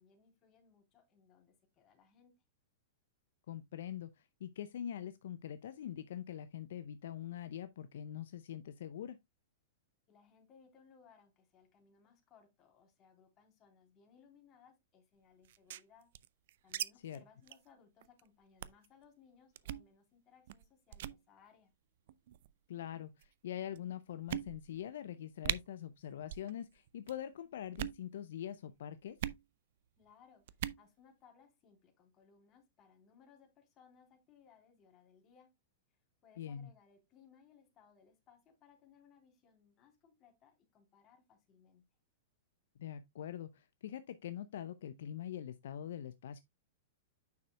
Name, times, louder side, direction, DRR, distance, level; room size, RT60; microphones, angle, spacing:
voice 1, 0.0-2.3 10.1-16.1 16.6-21.7 30.0-35.5 36.2-41.8, left 6 dB, 30° left, 3.7 m, -65 dB
voice 2, 3.5-9.2 17.0-17.2 22.7-29.2 36.4-36.7 42.8-46.4, left 10 dB, 65° left, 0.6 m, -44 dB
sound 1, 15.4-16.9 17.1-17.2 17.5-17.7 18.0-18.2 18.6-18.9 19.6-19.9 20.5-20.7 20.9-21.2 22.1-22.5 23.2-23.3 23.8-23.9 24.3-24.8 25.1-25.2 25.4-25.6 26.2-26.5 26.8-27.2 27.7-28.0 29.2-29.4 30.5-30.8, right 12 dB, 60° right, 0.5 m, -40 dB
9.4 x 6.7 x 2.2 m
hypercardioid pair, 105°, 0 cm